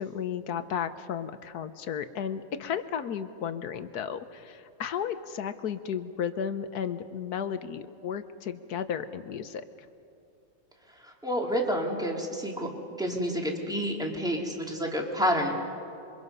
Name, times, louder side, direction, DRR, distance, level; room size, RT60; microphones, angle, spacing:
voice 1, 0.0-9.6, left 8 dB, 60° left, 11 dB, 1.3 m, -34 dB
voice 2, 11.2-12.7 13.0-15.5, equal, ahead, 0 dB, 2.6 m, -29 dB
28.0 x 24.0 x 5.5 m, 2.6 s
omnidirectional pair, 2.1 m